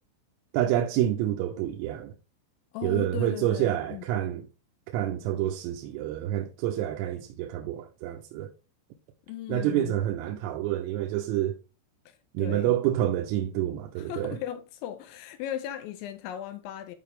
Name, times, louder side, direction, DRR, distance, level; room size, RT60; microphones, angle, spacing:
voice 1, 0.5-2.1 2.8-4.4 4.9-8.5 9.5-11.6 12.4-14.4, right 12 dB, 90° right, 3.4 m, -28 dB
voice 2, 2.7-4.0 9.3-10.0 12.1-12.8 14.0-17.0, left 11 dB, 85° left, 2.7 m, -37 dB
11.5 x 4.6 x 3.4 m
omnidirectional pair, 5.9 m